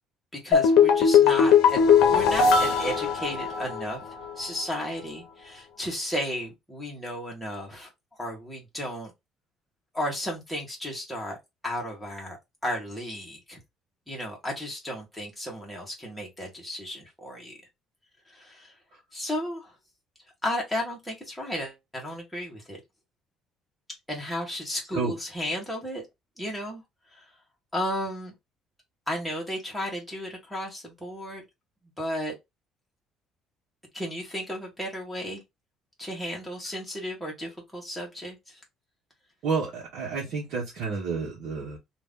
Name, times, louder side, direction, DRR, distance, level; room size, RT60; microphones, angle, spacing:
voice 1, 0.4-4.0 4.4-7.9 8.2-9.1 9.9-11.4 11.6-12.4 12.6-13.6 14.1-17.5 18.3-18.7 19.1-19.7 20.4-22.8 24.1-26.0 26.4-26.8 27.1-27.2 27.7-28.3 29.1-31.4 32.0-32.4 33.9-35.4 36.0-38.6, equal, ahead, 1.3 m, -34 dB
sound 1, 0.5-3.9 4.2-4.3, left 7 dB, 65° left, 0.8 m, -19 dB
voice 2, 39.4-41.8, right 4 dB, 55° right, 1.2 m, -30 dB
3.0 x 2.5 x 3.6 m
cardioid pair, 180°, 0 cm